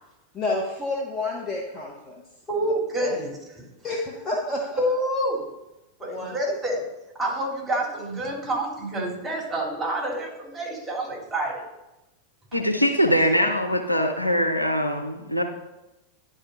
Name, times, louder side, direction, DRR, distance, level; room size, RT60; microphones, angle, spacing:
voice 1, 0.3-2.2 2.6-2.7 3.0-3.2 3.8-4.8 6.1-6.4 12.7-12.8 13.1-13.5, left 2 dB, 20° left, -2 dB, 1.2 m, -30 dB
voice 2, 2.5-3.3 4.8-5.4 6.0-6.8 7.2-11.7, right 1 dB, 5° right, -2 dB, 3.0 m, -27 dB
voice 3, 12.5-15.4, equal, 90° left, 3 dB, 0.7 m, -22 dB
10.5 x 3.8 x 5.5 m, 0.99 s
figure-of-eight pair, 90°, 0 cm